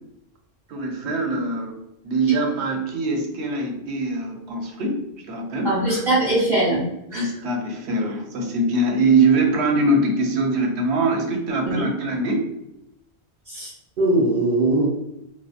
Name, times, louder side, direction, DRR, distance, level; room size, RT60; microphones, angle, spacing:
voice 1, 0.7-1.8 2.0-5.0 5.3-6.0 7.1-12.5, right 2 dB, 80° right, 2 dB, 0.8 m, -23 dB
voice 2, 5.6-6.8 7.1-7.2 11.7-11.8 13.5-13.7 14.0-14.9, right 2 dB, 55° right, -8 dB, 1.3 m, -20 dB
2.6 x 2.0 x 2.3 m, 0.84 s
omnidirectional pair, 1.1 m